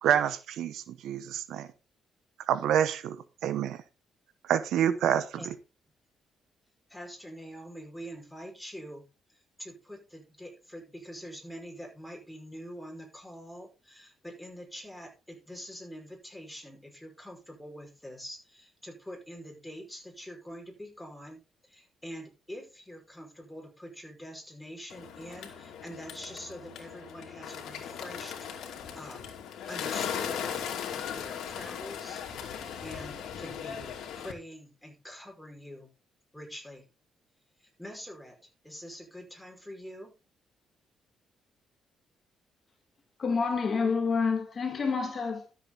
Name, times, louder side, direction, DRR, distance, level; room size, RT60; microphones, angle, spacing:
voice 1, 0.0-1.7 2.5-3.2 3.4-3.8 4.5-5.2, right 9 dB, 80° right, 1.0 m, -27 dB
voice 2, 6.9-29.2 29.7-35.9 36.3-36.9 37.6-38.4 38.6-40.1, equal, 5° left, 5.4 m, -45 dB
Bird, 24.9-34.3, left 8 dB, 80° left, 2.5 m, -38 dB
voice 3, 43.2-45.5, left 5 dB, 40° left, 2.1 m, -28 dB
12.5 x 7.6 x 4.0 m
cardioid pair, 90°, 0 cm